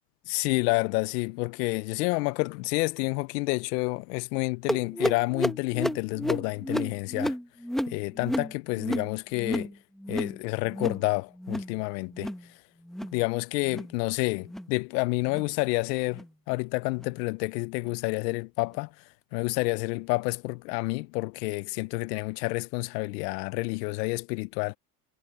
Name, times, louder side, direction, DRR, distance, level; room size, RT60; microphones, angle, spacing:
voice 1, 0.3-7.4 7.9-9.7 10.1-12.3 13.1-18.9 19.3-24.8, left 25 dB, 90° left, 0.6 m, -29 dB
sound 1, 4.7-9.7 10.0-10.4 10.7-11.0 11.4-11.7 12.1-12.4 12.8-13.2 13.6-13.9 14.4-14.7 15.3-15.5 16.1-16.3 17.0-17.1 17.8-17.9, equal, ahead, 1.2 m, -31 dB
supercardioid pair, 100°, 47 cm